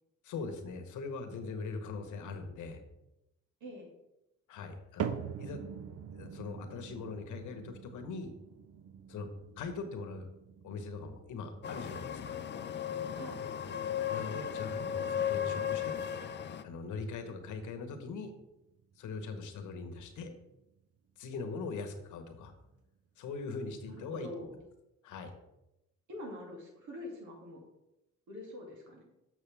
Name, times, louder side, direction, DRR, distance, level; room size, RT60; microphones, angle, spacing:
voice 1, 0.2-2.8 4.5-5.6 6.1-8.3 9.1-9.3 9.6-10.3 10.6-12.4 14.1-15.9 16.6-18.3 19.0-20.3 21.2-22.5 23.2-24.3 25.0-25.3, left 4 dB, 80° left, 6 dB, 1.2 m, -41 dB
voice 2, 3.6-3.9 13.1-13.5 23.8-24.6 26.1-27.7 28.3-29.0, left 1 dB, 80° right, -1 dB, 2.6 m, -45 dB
sound 1, 5.0-21.3 21.6-22.2 22.8-22.9 23.7-23.8, right 8 dB, 55° right, 0.6 m, -46 dB
sound 2, 11.6-16.6, left 9 dB, 35° left, 0.5 m, -35 dB
7.3 x 6.4 x 3.4 m, 0.90 s
cardioid pair, 90°, 30 cm